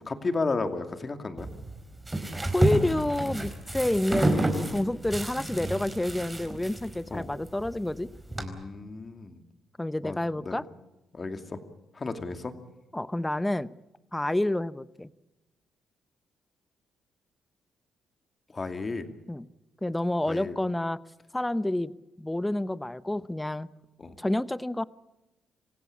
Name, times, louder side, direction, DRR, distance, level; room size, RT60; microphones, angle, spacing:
voice 1, 0.1-1.5 7.1-7.3 8.4-9.4 10.0-10.2 10.4-10.6 11.1-11.6 11.9-12.5 18.5-19.0 20.3-20.6 24.0-24.1, left 3 dB, 30° left, 7 dB, 2.5 m, -33 dB
sound 1, 1.4-8.4, right 1 dB, 15° right, 4.4 m, -30 dB
voice 2, 2.5-8.1 9.8-10.6 12.9-13.7 14.1-15.1 19.3-19.5 19.8-21.0 21.3-23.7 24.2-24.8, left 1 dB, 10° left, 16 dB, 0.8 m, -29 dB
27.0 x 16.0 x 8.6 m, 1.0 s
cardioid pair, 90°, 0 cm